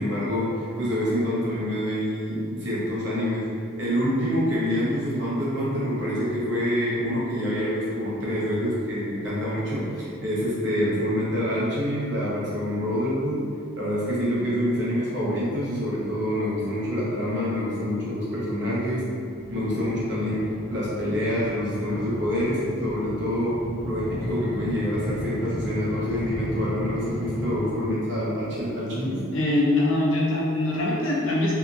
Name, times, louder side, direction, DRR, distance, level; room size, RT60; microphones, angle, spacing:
voice 1, 0.0-3.4 3.8-13.4 13.8-19.0 19.5-23.6 23.8-29.2, equal, 60° right, -8 dB, 0.9 m, -26 dB
sound 1, 19.3-27.7, equal, 5° right, 0.6 m, -34 dB
voice 2, 29.3-31.5, left 1 dB, 75° left, -4 dB, 0.6 m, -23 dB
2.7 x 2.5 x 2.3 m, 2.4 s
head